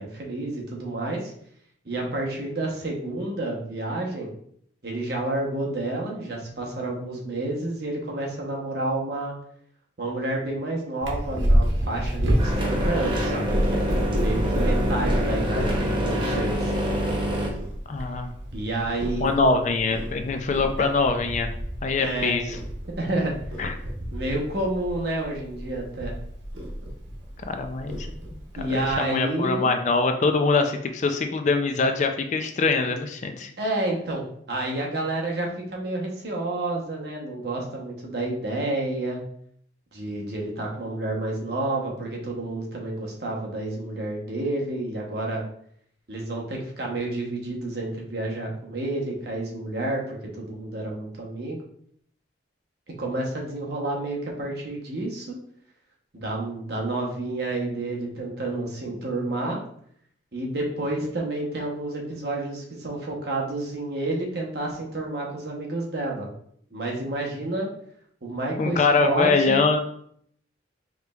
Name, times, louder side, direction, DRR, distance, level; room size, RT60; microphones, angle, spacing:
voice 1, 0.0-1.3 1.8-4.3 4.8-9.3 10.0-13.8 14.2-16.7 18.5-19.6 20.8-20.9 22.0-22.4 23.0-23.3 24.1-26.1 28.6-29.8 33.6-39.2 39.9-45.4 46.1-51.6 52.9-55.4 56.1-59.6 60.3-66.3 66.7-67.7 68.2-69.6, right 2 dB, 55° right, -1 dB, 0.9 m, -29 dB
Purr, 11.0-28.9, equal, 85° right, 1.0 m, -29 dB
sound 1, 12.4-17.5, equal, 25° right, 0.6 m, -26 dB
voice 2, 17.9-18.3 19.2-21.5 21.8-22.6 23.6-23.8 27.5-28.1 29.0-33.5 68.6-69.8, left 4 dB, 40° left, 6 dB, 0.3 m, -23 dB
4.8 x 3.1 x 2.3 m, 0.65 s
head